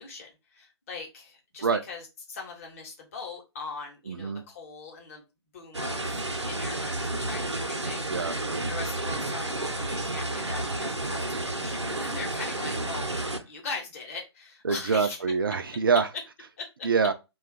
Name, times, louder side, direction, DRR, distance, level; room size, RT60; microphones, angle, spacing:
voice 1, 0.0-5.2 5.5-8.3 8.7-13.1 13.5-15.2 16.6-16.7, left 4 dB, 30° left, 0.9 m, -40 dB
voice 2, 4.1-4.4 8.1-8.3 14.6-16.1 16.8-17.1, right 5 dB, 50° right, 0.4 m, -25 dB
sound 1, 5.7-13.4, right 2 dB, 85° right, 0.7 m, -31 dB
2.4 x 2.3 x 3.6 m
figure-of-eight pair, 135°, 14 cm